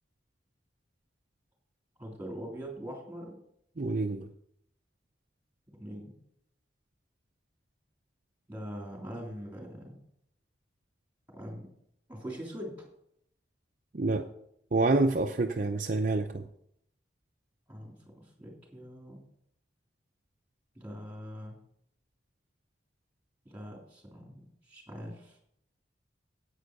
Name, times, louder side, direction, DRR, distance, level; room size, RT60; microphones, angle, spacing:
voice 1, 2.0-3.4 5.7-6.2 8.5-10.0 11.3-11.7 12.1-12.7 17.7-19.2 20.8-21.6 23.5-25.4, equal, 10° right, 0 dB, 3.4 m, -42 dB
voice 2, 3.8-4.3 13.9-14.3 14.7-16.4, right 3 dB, 45° right, 4 dB, 0.6 m, -27 dB
9.9 x 8.7 x 5.3 m, 0.72 s
head